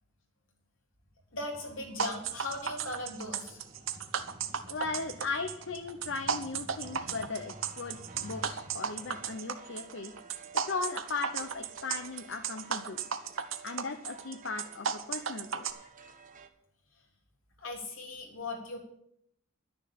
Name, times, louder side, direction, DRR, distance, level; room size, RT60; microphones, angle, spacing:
voice 1, 1.3-3.6 17.6-18.8, left 2 dB, 85° left, 1 dB, 3.5 m, -38 dB
sound 1, 1.5-9.3, equal, 25° right, 2.2 m, -52 dB
sound 2, 2.0-15.7, right 7 dB, 75° right, 1.0 m, -34 dB
voice 2, 4.7-10.1 10.6-13.1 13.6-15.9, left 4 dB, 65° left, 6 dB, 0.9 m, -37 dB
sound 3, 6.8-16.5, right 5 dB, 40° right, 1.2 m, -53 dB
11.5 x 6.9 x 8.6 m, 0.74 s
head